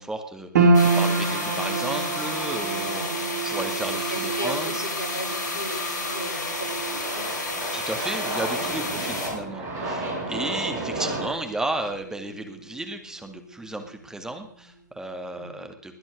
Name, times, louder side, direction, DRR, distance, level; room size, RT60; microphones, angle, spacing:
voice 1, 0.0-4.9 7.7-16.0, right 2 dB, 5° right, 6 dB, 2.2 m, -34 dB
sound 1, 0.5-13.0 13.2-14.2 14.6-14.7, right 3 dB, 60° right, 3.1 m, -28 dB
sound 2, 0.7-9.3, left 2 dB, 70° left, 5.5 m, -31 dB
voice 2, 2.8-3.2 4.1-7.4 8.9-9.0 15.4-15.7, equal, 90° left, 4 dB, 4.5 m, -37 dB
Aircraft, 5.5-11.3, right 2 dB, 30° right, 7.3 m, -33 dB
21.0 x 10.0 x 6.5 m, 0.62 s
figure-of-eight pair, 110°, 10 cm